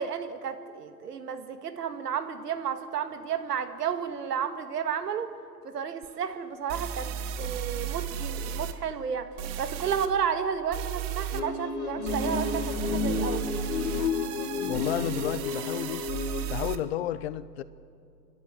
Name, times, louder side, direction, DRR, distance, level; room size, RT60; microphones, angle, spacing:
voice 1, 0.0-5.3 5.7-7.1 7.4-9.3 9.6-13.4, right 7 dB, 70° right, 9 dB, 2.0 m, -32 dB
sound 1, 6.0-6.1 6.7-8.7 9.4-10.1 10.7-11.4 12.0-16.7, right 8 dB, 40° right, 1.3 m, -34 dB
sound 2, 11.3-16.5, left 4 dB, 60° left, 2.0 m, -31 dB
voice 2, 14.7-16.1 16.5-17.6, left 12 dB, 40° left, 17 dB, 0.7 m, -32 dB
28.5 x 12.0 x 7.6 m, 2.5 s
hypercardioid pair, 120°, 49 cm